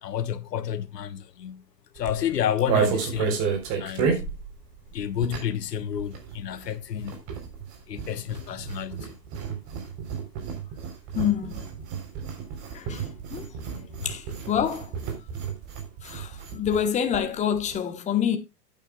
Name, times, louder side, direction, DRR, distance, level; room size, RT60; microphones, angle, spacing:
voice 1, 0.0-1.6 1.9-3.4 3.8-4.2 4.9-7.2 7.9-9.1, left 9 dB, 70° left, 1.3 m, -30 dB
sound 1, 2.0-5.7 5.9-16.9 17.1-17.2 17.4-17.8, right 6 dB, 35° right, 3.8 m, -31 dB
voice 2, 11.1-11.6 12.7-13.0 13.3-13.6 14.0-14.9 16.0-18.4, left 9 dB, 15° left, 1.2 m, -27 dB
14.0 x 9.1 x 2.3 m
hypercardioid pair, 120°, 50 cm